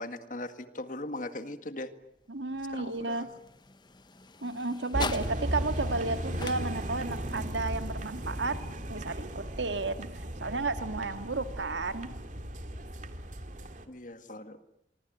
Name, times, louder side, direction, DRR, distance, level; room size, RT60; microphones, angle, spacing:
voice 1, 0.0-1.9 2.7-3.4 13.9-14.6, left 2 dB, 45° left, 10 dB, 2.0 m, -39 dB
sound 1, 2.0-10.3, left 4 dB, 25° left, 1.1 m, -45 dB
voice 2, 2.3-3.3 4.4-8.6 8.9-10.1 10.4-12.1, right 3 dB, 85° right, 9 dB, 2.1 m, -32 dB
sound 2, 4.9-13.8, right 1 dB, 45° right, 2.3 m, -36 dB
25.5 x 24.5 x 9.3 m, 0.79 s
head